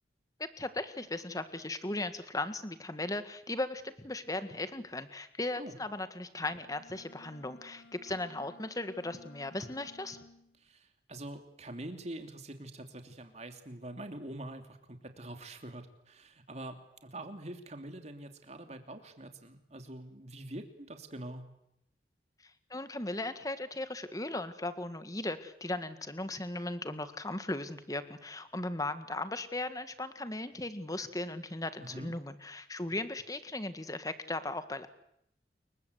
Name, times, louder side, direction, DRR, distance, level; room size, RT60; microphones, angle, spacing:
voice 1, 0.4-10.2 22.7-34.9, left 2 dB, 20° left, 11 dB, 1.7 m, -37 dB
Bowed string instrument, 6.5-10.6, left 2 dB, 70° left, 1.8 m, -57 dB
voice 2, 10.6-21.4 31.8-32.1, right 1 dB, 40° right, 6 dB, 3.0 m, -45 dB
29.5 x 23.0 x 8.2 m, 0.77 s
head